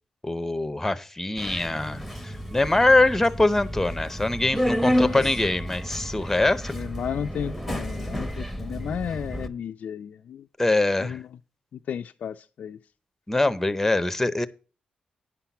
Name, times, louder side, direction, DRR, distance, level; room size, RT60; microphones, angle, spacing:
voice 1, 0.2-6.7 10.6-11.2 13.3-14.5, left 2 dB, 10° left, 0.7 m, -23 dB
Subway metro underground, 1.4-9.5, equal, 5° right, 1.0 m, -30 dB
voice 2, 4.9-5.5 6.2-6.3 6.7-10.5 11.0-11.3 11.7-12.8, left 8 dB, 65° left, 0.4 m, -34 dB
9.9 x 5.6 x 5.9 m
cardioid pair, 100°, 3 cm